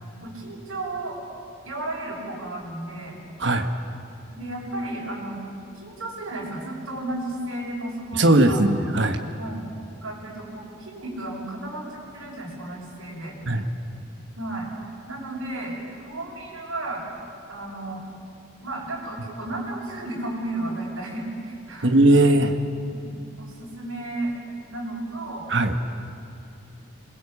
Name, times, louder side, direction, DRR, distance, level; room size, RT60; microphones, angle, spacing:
voice 1, 0.2-1.2 1.6-3.2 4.3-5.4 5.7-8.6 9.4-9.7 10.0-13.4 14.4-14.7 15.1-15.8 16.0-17.0 17.5-18.0 18.6-21.9 22.9-24.3 24.7-25.5, right 2 dB, 90° right, -5 dB, 6.5 m, -33 dB
voice 2, 3.4-3.7 8.1-9.2 13.5-13.7 21.8-22.6 25.5-25.7, right 1 dB, 60° right, 6 dB, 1.5 m, -18 dB
27.0 x 21.5 x 8.6 m, 2.6 s
head